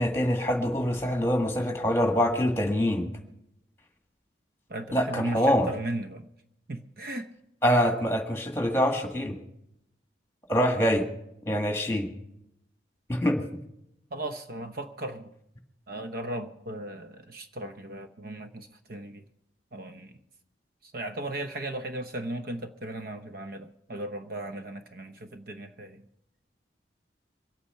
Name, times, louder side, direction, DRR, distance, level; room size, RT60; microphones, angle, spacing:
voice 1, 0.0-3.1 4.9-5.7 7.6-9.4 10.5-11.0 11.5-12.1 13.1-13.4, equal, 15° left, 1.8 m, -25 dB
voice 2, 4.7-6.3 6.7-7.3 14.1-15.3 15.9-19.2 19.7-20.1 20.9-26.0, right 1 dB, 55° right, 0.9 m, -36 dB
23.5 x 8.6 x 5.6 m
head